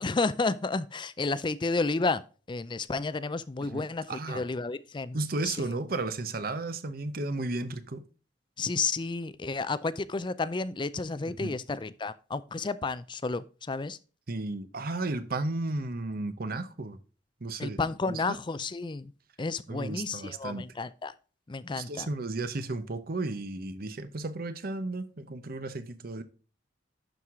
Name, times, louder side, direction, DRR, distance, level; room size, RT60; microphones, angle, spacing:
voice 1, 0.0-2.2 2.5-5.2 8.6-14.0 17.6-19.1 19.4-21.1 21.5-22.1, left 3 dB, 25° left, 0.4 m, -31 dB
voice 2, 3.6-4.5 5.1-8.0 11.3-11.6 14.3-17.0 17.4-17.8 18.1-18.4 19.7-20.7 21.8-26.2, right 2 dB, 55° right, 0.8 m, -34 dB
11.5 x 4.8 x 3.7 m
head